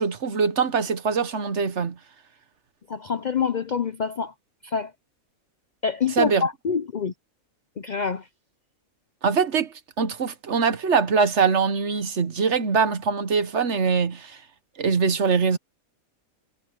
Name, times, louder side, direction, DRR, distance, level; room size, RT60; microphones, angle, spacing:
voice 1, 0.0-1.9 6.2-6.5 9.2-14.3 14.8-15.6, right 5 dB, 55° right, 1.3 m, -23 dB
voice 2, 2.9-4.3 4.6-4.9 5.8-7.1 7.8-8.2, left 6 dB, 60° left, 0.4 m, -26 dB
omnidirectional pair, 1.5 m